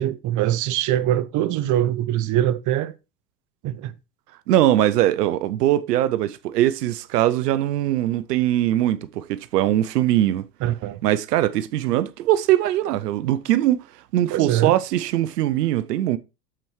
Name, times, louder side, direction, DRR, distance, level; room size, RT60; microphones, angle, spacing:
voice 1, 0.0-2.9 3.6-3.9 10.6-11.0 14.3-14.8, right 12 dB, 40° right, 0.8 m, -23 dB
voice 2, 4.5-10.4 11.0-13.8 14.1-16.2, right 13 dB, 90° right, 0.6 m, -21 dB
13.5 x 4.5 x 3.1 m
hypercardioid pair, 95°, 47 cm